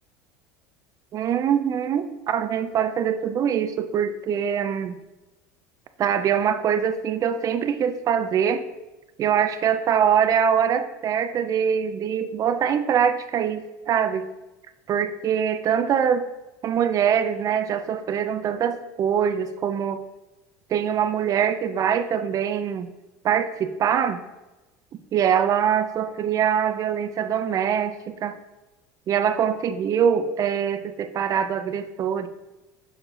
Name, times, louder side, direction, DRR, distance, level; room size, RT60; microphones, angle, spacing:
voice 1, 1.1-5.0 6.0-8.6 9.2-14.3 14.9-16.3 16.6-20.0 20.7-22.9 23.2-24.2 25.1-28.4 29.1-32.3, right 8 dB, 40° right, 9 dB, 0.5 m, -23 dB
6.5 x 4.5 x 3.8 m, 1.0 s
supercardioid pair, 100°, 9 cm